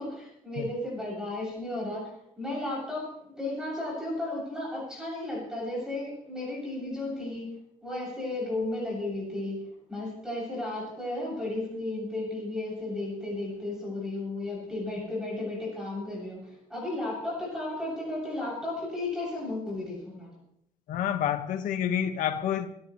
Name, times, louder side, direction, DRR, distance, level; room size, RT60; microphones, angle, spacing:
voice 1, 0.0-2.1 2.4-7.5 7.8-9.6 9.9-20.3, left 2 dB, 5° right, 7.5 m, -34 dB
voice 2, 20.9-22.7, left 9 dB, 75° left, 1.6 m, -28 dB
27.5 x 14.0 x 3.3 m
cardioid pair, 180°, 14 cm